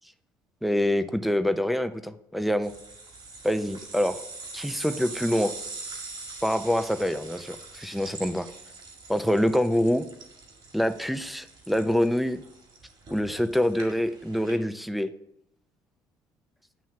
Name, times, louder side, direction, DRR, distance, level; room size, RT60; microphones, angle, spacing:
voice 1, 0.6-2.7 3.4-4.2 4.5-5.5 6.4-8.5 9.1-10.1 10.7-12.4 13.1-15.1, equal, ahead, 8 dB, 0.5 m, -25 dB
sound 1, 2.6-14.6, right 3 dB, 55° right, 2.1 m, -43 dB
9.1 x 3.1 x 5.7 m, 0.79 s
supercardioid pair, 70°, 10 cm